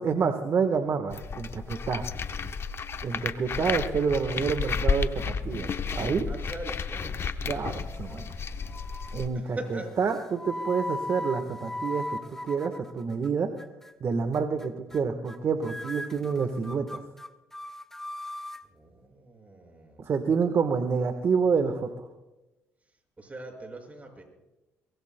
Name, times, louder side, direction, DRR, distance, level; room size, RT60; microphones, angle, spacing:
voice 1, 0.0-2.1 3.0-6.3 7.5-8.3 9.1-9.6 10.0-13.5 14.0-17.0 20.0-22.0, right 5 dB, 50° right, 7 dB, 1.3 m, -28 dB
sound 1, 1.1-9.3, left 5 dB, 45° left, 0.9 m, -32 dB
voice 2, 6.3-7.3 9.3-9.9 18.6-20.1 23.2-24.2, right 1 dB, 25° right, 2 dB, 5.9 m, -41 dB
sound 2, 7.8-8.3 8.7-9.2 10.0-13.3 13.6-13.9 14.3-14.7 14.9-15.4 15.6-18.6, left 1 dB, 5° left, 0.9 m, -38 dB
23.5 x 22.0 x 2.2 m, 1.0 s
supercardioid pair, 75°, 6 cm